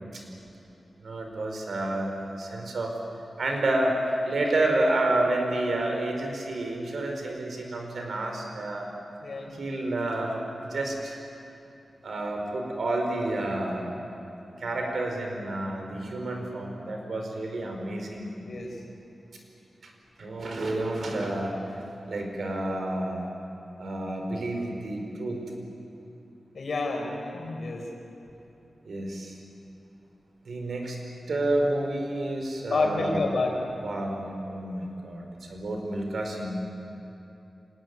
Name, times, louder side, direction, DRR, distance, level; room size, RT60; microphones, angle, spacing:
voice 1, 1.0-2.9 3.4-8.9 9.6-10.4 10.7-11.2 12.0-14.0 14.6-18.3 20.2-21.5 22.1-23.3 23.8-25.4 28.8-29.4 30.4-31.0 31.3-33.3 33.7-35.2 35.5-36.6, right 1 dB, 70° right, 2 dB, 4.7 m, -29 dB
voice 2, 9.2-9.5 18.4-18.7 26.5-27.8 32.7-33.5, left 3 dB, 65° left, 2 dB, 4.6 m, -29 dB
25.5 x 19.5 x 9.6 m, 2.9 s
wide cardioid pair, 105°, 0 cm